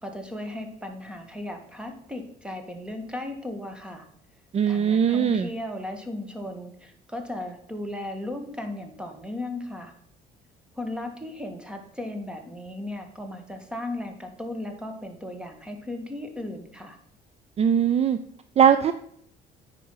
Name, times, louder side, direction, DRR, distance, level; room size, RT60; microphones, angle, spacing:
voice 1, 0.0-4.0 4.7-9.9 10.8-17.0, left 1 dB, 5° right, 4 dB, 1.7 m, -36 dB
voice 2, 4.5-5.5 17.6-18.2 18.6-18.9, right 8 dB, 40° right, 10 dB, 0.5 m, -20 dB
9.3 x 5.2 x 5.7 m, 0.66 s
cardioid pair, 110°, 17 cm